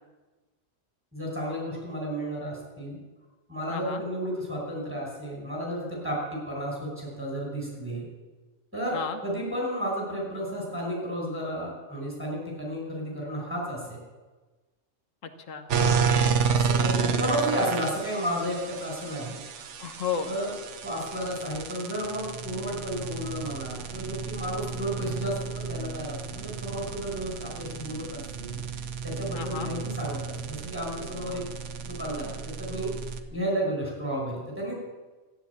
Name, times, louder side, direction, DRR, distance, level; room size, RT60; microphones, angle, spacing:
voice 1, 1.1-3.0 3.5-8.1 8.7-14.0 15.8-19.4 20.3-20.5 20.8-28.6 29.0-31.4 31.8-32.3 32.6-32.9 33.3-34.7, equal, 10° right, -3 dB, 5.6 m, -32 dB
voice 2, 3.7-4.0 8.9-9.2 15.2-16.3 19.8-20.4 29.3-29.7, left 6 dB, 90° left, 7 dB, 1.5 m, -34 dB
sound 1, 15.7-33.2, right 6 dB, 70° right, 1.2 m, -31 dB
13.5 x 10.5 x 8.4 m, 1.3 s
omnidirectional pair, 1.3 m